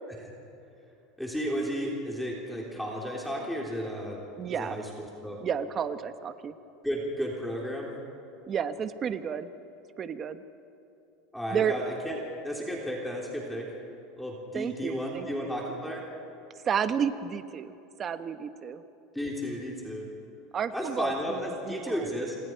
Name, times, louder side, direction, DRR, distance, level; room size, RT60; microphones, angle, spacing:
voice 1, 1.2-4.2 4.5-5.4 6.8-7.9 11.3-13.7 14.2-16.0 19.1-20.1 20.7-22.3, equal, ahead, -3 dB, 3.5 m, -33 dB
voice 2, 4.4-4.8 5.4-6.5 8.5-9.5 10.0-10.4 11.5-11.8 14.5-15.3 16.6-17.7 18.0-18.8 20.5-22.1, right 7 dB, 30° right, 10 dB, 1.1 m, -31 dB
27.0 x 26.0 x 4.7 m, 2.8 s
supercardioid pair, 130°, 0 cm